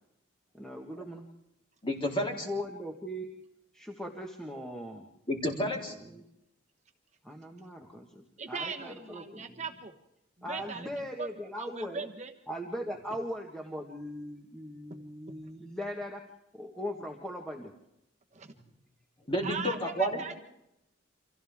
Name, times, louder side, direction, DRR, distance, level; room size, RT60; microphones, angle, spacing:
voice 1, 0.5-1.3 2.4-3.3 3.7-5.0 6.0-6.2 7.2-9.6 10.4-12.1 12.5-16.2 16.5-17.7 20.1-20.2, equal, 5° left, 0 dB, 1.5 m, -39 dB
voice 2, 1.8-2.5 5.3-5.9 19.3-20.2, equal, 25° left, 0 dB, 3.7 m, -30 dB
voice 3, 8.4-9.9 10.5-10.9 11.1-11.3 11.6-12.3 14.9-15.0 18.3-18.5 19.4-20.4, right 5 dB, 35° right, 4 dB, 1.2 m, -39 dB
30.0 x 26.0 x 3.6 m, 0.85 s
head